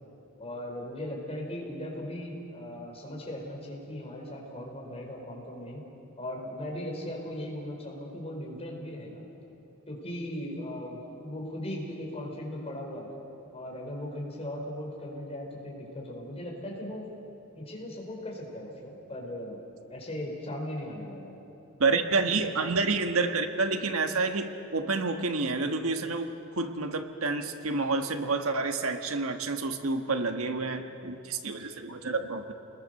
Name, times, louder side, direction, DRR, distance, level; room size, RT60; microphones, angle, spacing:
voice 1, 0.4-5.8 6.2-9.2 9.9-13.1 13.5-17.1 17.5-19.6 19.9-21.4, left 1 dB, 30° left, -1 dB, 4.7 m, -38 dB
voice 2, 21.8-32.5, right 3 dB, 85° right, 6 dB, 1.4 m, -29 dB
29.5 x 21.0 x 6.7 m, 3.0 s
head